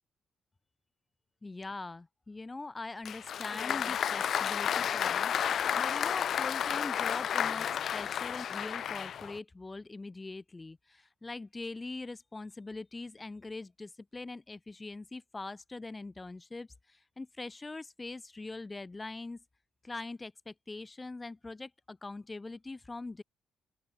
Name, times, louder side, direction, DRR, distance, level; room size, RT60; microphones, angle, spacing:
voice 1, 1.4-5.4 5.8-19.4 19.8-23.2, left 3 dB, 20° left, 1.4 m, -42 dB
Applause, 3.0-9.4, left 9 dB, 60° left, 1.0 m, -32 dB
open air
cardioid pair, 90°, 0 cm